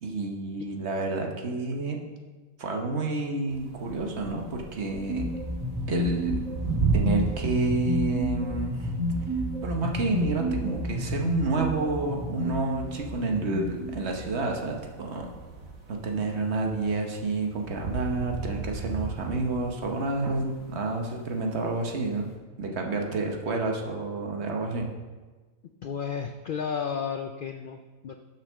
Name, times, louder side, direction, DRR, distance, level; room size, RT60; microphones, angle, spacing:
voice 1, 0.0-2.0 2.6-5.3 5.9-6.4 6.9-8.9 9.6-15.3 15.9-22.2 22.6-24.9, right 3 dB, 55° right, 2 dB, 1.2 m, -29 dB
sound 1, 3.5-22.3, right 4 dB, 75° right, 1.7 m, -37 dB
sound 2, 5.1-14.7, equal, 30° right, 2.1 m, -31 dB
voice 2, 25.8-28.1, left 7 dB, 85° left, 6 dB, 0.4 m, -32 dB
7.0 x 5.7 x 6.2 m, 1.3 s
omnidirectional pair, 1.4 m